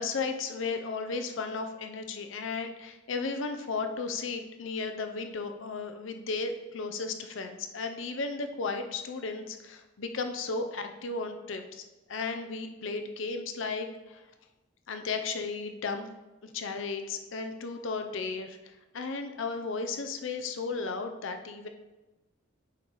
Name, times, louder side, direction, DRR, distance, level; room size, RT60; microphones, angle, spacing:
voice 1, 0.0-11.8 12.1-14.2 14.9-16.1 16.4-21.7, left 4 dB, 70° left, 6 dB, 0.6 m, -34 dB
8.3 x 4.6 x 4.0 m, 1.1 s
head